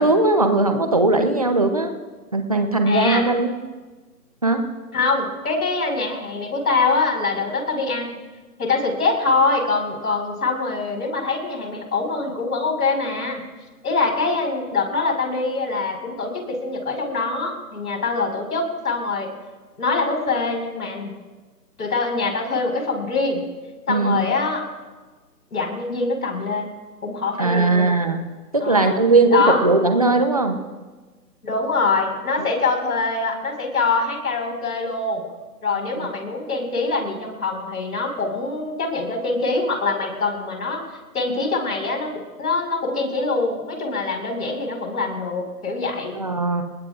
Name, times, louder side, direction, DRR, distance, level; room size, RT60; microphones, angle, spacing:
voice 1, 0.0-1.9 2.3-3.5 4.4-4.6 23.9-24.3 27.4-28.2 28.5-30.6 32.4-32.5 36.0-36.1 46.1-46.6, right 2 dB, 25° right, 6 dB, 0.8 m, -19 dB
voice 2, 2.9-3.3 4.9-8.2 8.6-13.4 13.8-19.3 19.8-21.1 21.8-23.4 23.9-24.6 25.5-26.7 27.0-27.9 28.6-29.0 29.3-29.6 31.4-35.3 35.6-40.8 41.1-46.2, left 3 dB, 65° left, 3 dB, 5.2 m, -24 dB
28.5 x 19.5 x 2.5 m, 1.3 s
hypercardioid pair, 175°, 49 cm